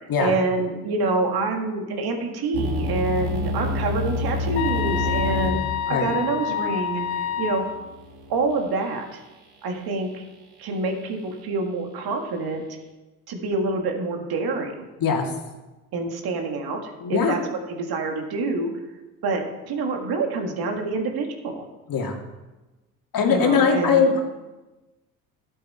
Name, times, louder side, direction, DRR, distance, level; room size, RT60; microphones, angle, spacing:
voice 1, 0.2-7.6 8.3-9.2 9.6-10.3 10.6-12.6 13.3-14.8 15.9-17.4 17.7-18.7 19.2-21.6 23.3-24.0, right 3 dB, 60° right, 3 dB, 2.0 m, -27 dB
sound 1, 2.5-8.5, left 2 dB, 85° right, 2.4 m, -29 dB
sound 2, 4.6-7.8, left 9 dB, 85° left, 0.6 m, -28 dB
voice 2, 17.0-17.4 21.9-22.2 23.1-24.2, left 5 dB, 50° left, 2 dB, 2.2 m, -20 dB
12.5 x 8.1 x 4.4 m, 1.1 s
hypercardioid pair, 60°, 42 cm